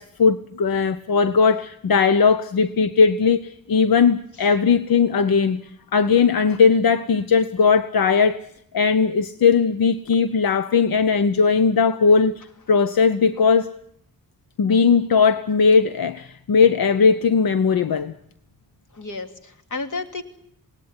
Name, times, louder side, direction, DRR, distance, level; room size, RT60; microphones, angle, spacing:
voice 1, 0.0-5.6 5.9-8.4 8.7-13.8 14.6-18.1, left 5 dB, 85° left, 1.0 m, -18 dB
voice 2, 18.9-20.2, left 3 dB, 60° left, 2.8 m, -32 dB
27.0 x 19.0 x 9.8 m
wide cardioid pair, 155°, 35 cm